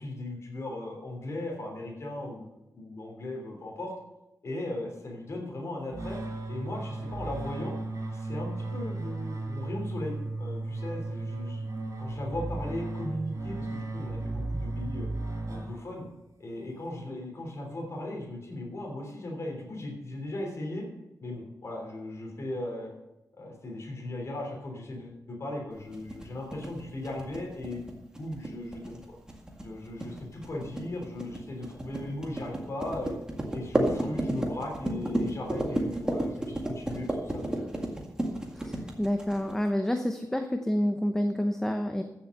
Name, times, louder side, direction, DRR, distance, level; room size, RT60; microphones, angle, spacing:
voice 1, 0.0-2.4 2.7-3.9 4.4-6.2 6.5-7.7 8.1-11.6 12.0-15.1 15.5-16.1 16.4-20.9 21.2-22.9 23.3-29.0 29.6-33.1 33.5-37.6, left 1 dB, 50° left, -1 dB, 3.2 m, -37 dB
sound 1, 5.9-16.2, right 2 dB, 60° right, 5.1 m, -35 dB
sound 2, 25.9-39.7, right 1 dB, 10° right, 1.9 m, -32 dB
voice 2, 38.5-42.0, equal, 5° left, 5 dB, 0.7 m, -28 dB
14.5 x 7.1 x 6.5 m, 0.93 s
wide cardioid pair, 170°, 6 cm